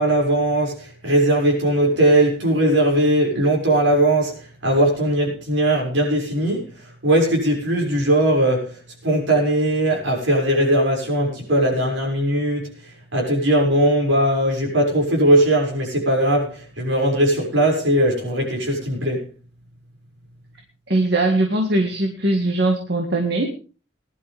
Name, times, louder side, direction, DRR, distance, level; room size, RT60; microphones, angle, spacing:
voice 1, 0.0-19.3, right 1 dB, 70° right, 6.3 m, -19 dB
voice 2, 20.9-23.5, right 2 dB, 55° right, 1.9 m, -20 dB
20.0 x 11.5 x 3.5 m
head